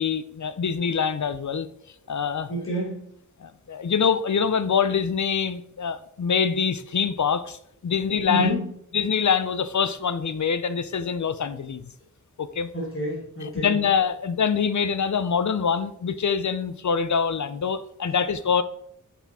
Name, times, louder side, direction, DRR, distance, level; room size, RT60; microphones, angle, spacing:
voice 1, 0.0-1.7 2.1-2.5 3.4-8.5 8.9-11.9 12.4-12.7 13.4-18.6, left 6 dB, 60° left, 13 dB, 0.5 m, -25 dB
voice 2, 2.5-3.0 8.3-8.6 12.7-13.8, left 1 dB, 40° left, -4 dB, 1.4 m, -28 dB
5.8 x 4.2 x 4.1 m, 0.69 s
wide cardioid pair, 55°, 33 cm